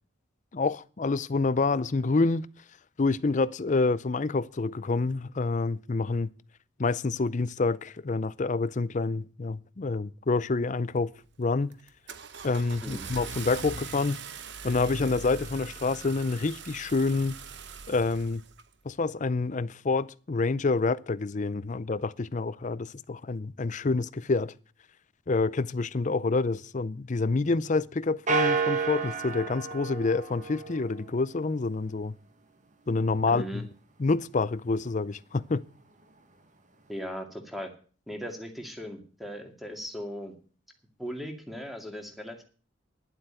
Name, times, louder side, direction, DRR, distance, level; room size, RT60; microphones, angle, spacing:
voice 1, 0.5-2.5 3.0-6.3 6.8-11.1 11.4-11.7 12.4-14.2 14.6-17.4 17.9-18.4 18.8-24.5 25.3-32.1 32.9-33.7 34.0-35.6, left 3 dB, 40° left, 0.5 m, -27 dB
Car / Engine starting, 10.9-11.3 11.7-18.7, right 6 dB, 60° right, 1.0 m, -42 dB
sound 1, 28.3-31.0, right 5 dB, 40° right, 1.4 m, -29 dB
voice 2, 33.3-33.6 36.9-37.7 38.1-40.3 41.0-42.4, equal, ahead, 2.2 m, -38 dB
11.0 x 7.9 x 9.0 m
head